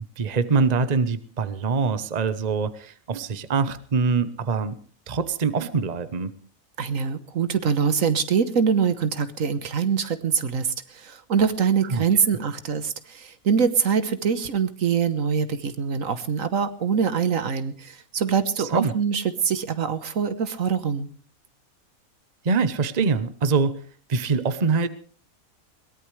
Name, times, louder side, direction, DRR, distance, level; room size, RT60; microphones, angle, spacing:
voice 1, 0.2-4.7 5.1-6.3 11.9-12.0 18.6-18.9 22.4-23.8 24.1-24.9, right 4 dB, 35° right, 13 dB, 1.0 m, -24 dB
voice 2, 6.8-21.1, right 6 dB, 70° right, 12 dB, 1.5 m, -24 dB
22.0 x 18.0 x 3.3 m, 0.42 s
omnidirectional pair, 1.5 m